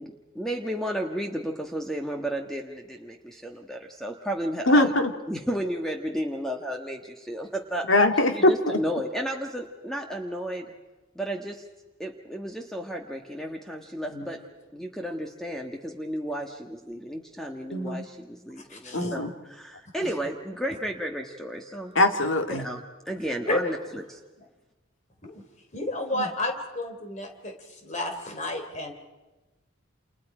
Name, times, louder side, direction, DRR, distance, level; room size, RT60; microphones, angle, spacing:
voice 1, 0.0-4.9 5.3-7.9 8.3-10.7 11.1-11.6 12.0-14.4 14.7-19.2 19.5-21.9 22.6-24.0, equal, ahead, 2 dB, 1.4 m, -33 dB
voice 2, 4.7-5.1 7.9-8.5 17.7-18.0 18.9-19.3 22.0-22.7 26.1-26.2, left 1 dB, 70° left, 6 dB, 2.1 m, -21 dB
voice 3, 18.7-19.2 20.0-20.1 23.5-24.0 25.2-25.4 25.7-28.9, left 1 dB, 35° left, 4 dB, 3.4 m, -32 dB
29.5 x 28.5 x 5.0 m, 1.1 s
head